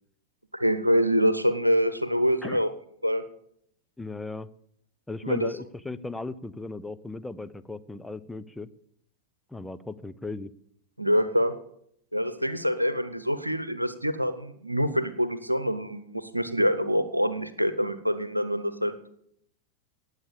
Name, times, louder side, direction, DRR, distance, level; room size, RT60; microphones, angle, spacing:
voice 1, 0.5-2.7 3.0-3.2 5.2-5.5 11.0-11.6 12.1-18.9, equal, 85° right, 13 dB, 0.9 m, -25 dB
voice 2, 4.0-4.5 5.1-8.7 9.5-10.5, left 3 dB, 5° left, 12 dB, 0.7 m, -36 dB
18.5 x 8.1 x 7.1 m, 0.71 s
figure-of-eight pair, 90°, 0 cm